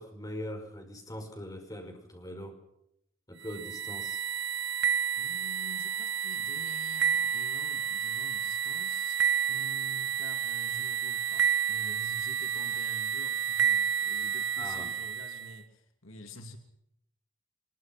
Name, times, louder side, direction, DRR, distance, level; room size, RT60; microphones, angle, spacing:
voice 1, 0.0-2.5 3.3-4.2 14.6-14.9, left 1 dB, 15° left, 3 dB, 5.5 m, -41 dB
sound 1, 3.4-15.5, right 8 dB, 55° right, 0.9 m, -30 dB
voice 2, 5.2-9.2 9.5-16.6, left 2 dB, 75° left, 6 dB, 2.9 m, -48 dB
24.0 x 22.0 x 6.1 m, 0.76 s
head